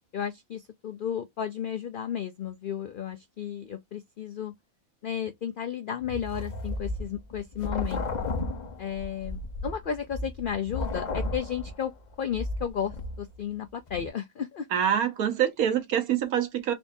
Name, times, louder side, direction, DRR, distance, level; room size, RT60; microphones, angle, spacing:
voice 1, 0.1-4.5 5.0-8.1 8.8-11.9 12.2-14.7, left 8 dB, 75° left, 0.4 m, -33 dB
sound 1, 6.0-13.5 13.9-14.1, left 2 dB, 40° left, 0.7 m, -34 dB
voice 2, 14.7-16.7, right 9 dB, 85° right, 1.4 m, -25 dB
3.9 x 3.5 x 2.6 m
omnidirectional pair, 1.5 m